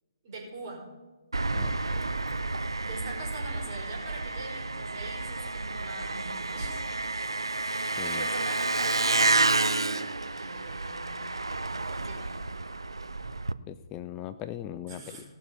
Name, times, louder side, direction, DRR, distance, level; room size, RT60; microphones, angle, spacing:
voice 1, 0.2-0.8 2.8-6.8 8.0-11.2 11.9-12.4 14.9-15.2, right 3 dB, 40° right, -2 dB, 4.4 m, -43 dB
Engine, 1.3-13.5, right 2 dB, 80° right, 0.5 m, -30 dB
voice 2, 13.7-15.2, left 12 dB, 20° left, 12 dB, 0.4 m, -39 dB
17.0 x 6.6 x 5.5 m, 1.3 s
figure-of-eight pair, 130°, 2 cm